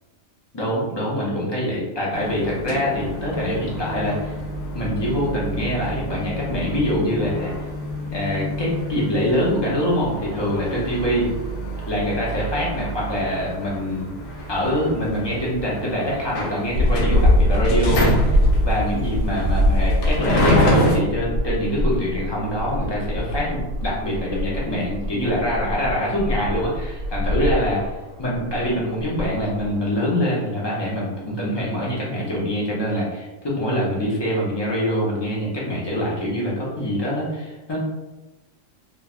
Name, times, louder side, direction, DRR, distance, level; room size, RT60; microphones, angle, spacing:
voice 1, 0.5-4.3 4.7-7.7 8.1-11.3 11.9-14.2 14.5-27.9 28.2-37.8, equal, 30° left, -5 dB, 0.5 m, -24 dB
sound 1, 2.1-21.0, equal, 70° left, 0.8 m, -27 dB
sound 2, 16.7-29.9, left 1 dB, 85° right, 1.1 m, -23 dB
3.1 x 2.1 x 2.3 m, 1.1 s
omnidirectional pair, 1.4 m